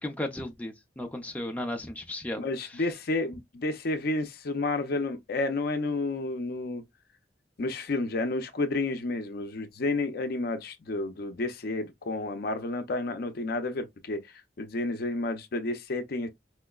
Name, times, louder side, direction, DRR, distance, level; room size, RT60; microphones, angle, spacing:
voice 1, 0.0-2.9, left 1 dB, 10° left, 0.5 m, -35 dB
voice 2, 2.4-6.8 7.6-14.2 14.6-16.3, left 2 dB, 60° left, 0.5 m, -31 dB
4.3 x 2.1 x 2.3 m
head